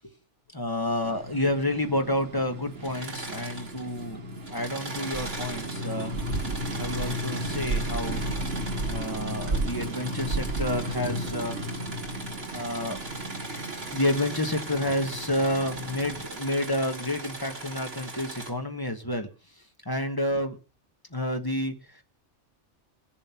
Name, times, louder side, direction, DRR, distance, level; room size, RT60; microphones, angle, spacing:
voice 1, 0.5-4.2 4.5-6.1 6.8-8.2 8.9-11.6 12.5-13.0 13.5-13.6 13.9-19.3 19.8-20.6 21.1-22.0, left 1 dB, 20° left, 5 dB, 1.4 m, -29 dB
sound 1, 1.0-16.3, right 1 dB, 75° right, 2.2 m, -34 dB
Engine / Mechanisms, 2.7-4.1 4.4-18.5, right 3 dB, 60° right, 2.8 m, -39 dB
19.0 x 7.3 x 5.9 m, 0.38 s
omnidirectional pair, 1.2 m